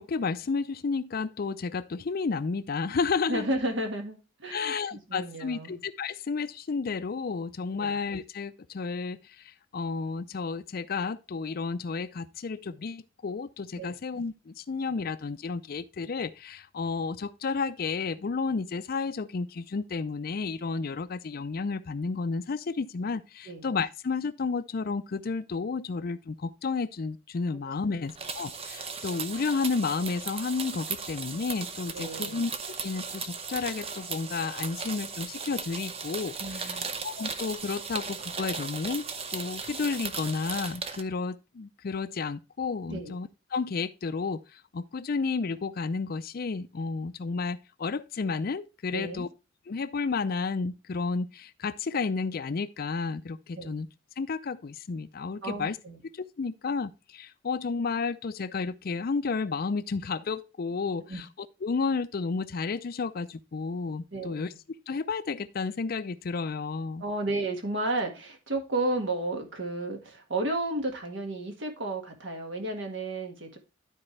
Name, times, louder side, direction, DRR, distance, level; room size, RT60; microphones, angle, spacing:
voice 1, 0.0-3.5 4.5-9.2 9.7-32.5 32.8-36.8 37.0-39.0 39.3-44.4 44.7-49.3 49.7-53.9 54.2-55.8 56.4-61.2 61.6-64.5 64.9-67.0, left 4 dB, 55° left, 0.5 m, -32 dB
voice 2, 3.3-5.8 7.8-8.0 13.7-13.9 23.5-23.6 27.5-28.0 31.9-32.4 36.4-36.9 42.9-43.1 48.9-49.3 53.5-53.7 55.4-56.0 61.1-61.2 64.1-64.4 67.0-73.6, right 2 dB, 75° right, 1.7 m, -33 dB
sound 1, 28.1-41.0, right 5 dB, 30° right, 0.7 m, -37 dB
12.0 x 4.4 x 3.2 m
head